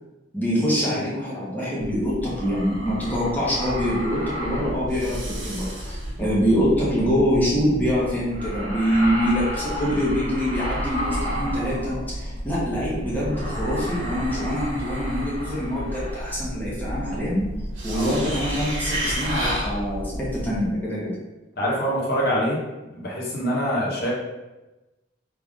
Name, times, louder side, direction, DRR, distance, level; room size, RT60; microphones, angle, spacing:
voice 1, 0.3-17.4 17.8-21.1, equal, 10° left, -8 dB, 1.3 m, -25 dB
sound 1, 1.8-20.7, equal, 75° right, 1.1 m, -31 dB
voice 2, 21.6-22.6 23.0-24.1, equal, 55° left, -4 dB, 1.2 m, -25 dB
3.4 x 3.4 x 3.6 m, 1.1 s
head